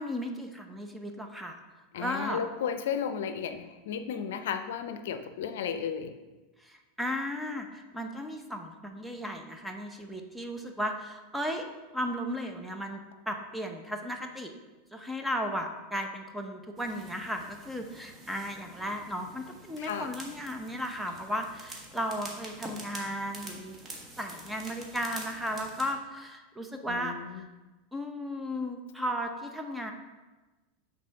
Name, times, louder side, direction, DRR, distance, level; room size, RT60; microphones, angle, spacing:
voice 1, 0.0-1.6 2.0-2.4 6.6-11.7 11.9-14.5 14.9-23.8 24.2-27.5 27.9-29.9, equal, 5° right, 3 dB, 0.7 m, -35 dB
voice 2, 1.9-6.1 19.8-20.1 26.9-27.4, left 7 dB, 80° left, 9 dB, 0.5 m, -34 dB
sound 1, 16.8-25.9, right 2 dB, 20° right, 1.4 m, -47 dB
6.0 x 3.9 x 5.7 m, 1.2 s
supercardioid pair, 120°, 0 cm